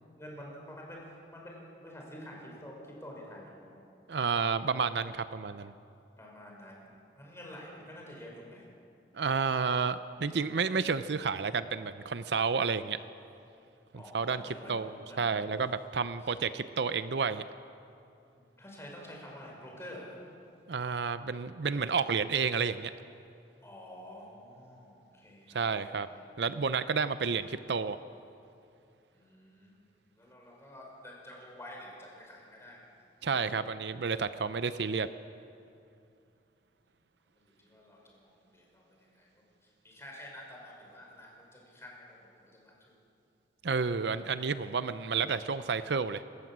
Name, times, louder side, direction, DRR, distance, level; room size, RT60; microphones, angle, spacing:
voice 1, 0.1-1.0 1.3-3.8 6.2-6.9 7.2-8.6 13.9-15.5 16.2-16.3 18.3-20.2 23.6-25.6 25.9-26.2 29.1-29.7 30.1-33.0 37.4-42.7, equal, 15° left, -2 dB, 5.4 m, -49 dB
voice 2, 4.1-5.7 9.2-13.0 14.1-14.9 15.2-17.4 20.7-22.9 25.5-26.1 26.4-28.0 33.2-35.1 43.6-46.2, right 5 dB, 70° right, 12 dB, 0.6 m, -30 dB
27.5 x 14.0 x 7.5 m, 2.6 s
head